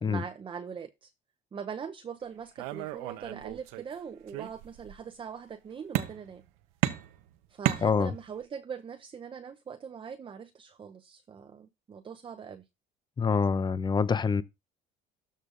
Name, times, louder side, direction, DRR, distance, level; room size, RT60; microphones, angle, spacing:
voice 1, 0.0-1.1 1.5-6.4 7.5-12.7, right 7 dB, 30° right, 0.7 m, -42 dB
sound 1, 2.6-3.9 4.3-5.0 5.9-6.5 6.8-8.4, right 15 dB, 85° right, 0.8 m, -33 dB
voice 2, 13.2-14.4, left 5 dB, 25° left, 0.7 m, -26 dB
13.0 x 5.2 x 2.5 m
supercardioid pair, 90°, 17 cm